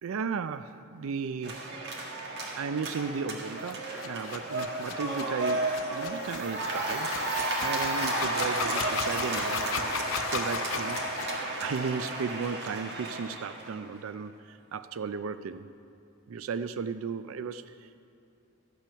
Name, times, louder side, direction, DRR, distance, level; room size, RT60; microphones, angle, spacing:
voice 1, 0.0-1.7 2.5-15.7 16.3-18.1, right 5 dB, 85° right, 12 dB, 0.4 m, -35 dB
sound 1, 1.4-13.8, right 2 dB, 55° right, 1.7 m, -33 dB
sound 2, 3.6-11.4, left 6 dB, 80° left, 0.6 m, -36 dB
sound 3, 6.1-8.2 8.8-9.7, right 3 dB, 20° right, 2.0 m, -49 dB
13.5 x 8.9 x 5.7 m, 2.5 s
head